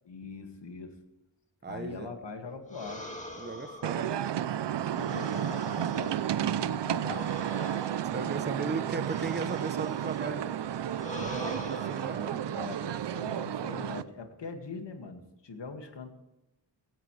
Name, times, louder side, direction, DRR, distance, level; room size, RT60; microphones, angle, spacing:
voice 1, 0.1-1.0 1.7-3.0 4.9-7.3 8.2-8.5 12.4-16.1, left 4 dB, 60° left, 5 dB, 2.3 m, -42 dB
voice 2, 1.6-2.1 3.4-4.2 8.1-10.5 11.2-12.4, right 4 dB, 20° right, 10 dB, 1.0 m, -36 dB
sound 1, 2.7-6.4 7.0-10.3 10.9-12.3, left 1 dB, 15° left, 2.3 m, -44 dB
sound 2, 3.8-14.0, right 10 dB, 60° right, 0.7 m, -32 dB
17.0 x 16.5 x 3.4 m, 0.96 s
wide cardioid pair, 110°, 47 cm